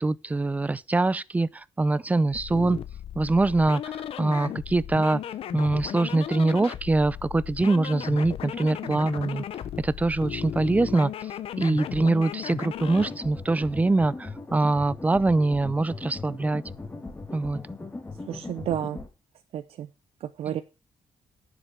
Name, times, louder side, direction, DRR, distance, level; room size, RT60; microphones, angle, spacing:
voice 1, 0.0-2.8 3.2-3.8 4.2-5.2 5.5-9.4 9.8-11.1 11.6-16.6 17.3-17.6, right 2 dB, 15° right, 0.5 m, -24 dB
sound 1, 2.3-13.1, left 10 dB, 75° left, 0.9 m, -36 dB
sound 2, 12.9-19.1, left 3 dB, 20° left, 2.1 m, -39 dB
voice 2, 18.3-19.0 19.5-19.9 20.2-20.6, right 10 dB, 75° right, 0.6 m, -31 dB
9.9 x 7.4 x 5.9 m
cardioid pair, 105°, 10 cm